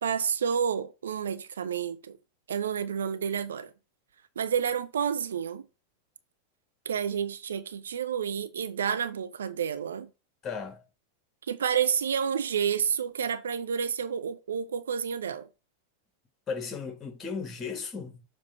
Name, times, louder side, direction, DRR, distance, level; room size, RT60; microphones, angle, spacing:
voice 1, 0.0-2.2 2.5-3.7 4.4-5.6 6.9-10.1 11.5-15.5, right 7 dB, 65° right, 0.6 m, -30 dB
voice 2, 10.4-10.8 16.5-18.2, left 5 dB, 25° left, 1.7 m, -35 dB
7.3 x 3.1 x 5.6 m
figure-of-eight pair, 90°, 0 cm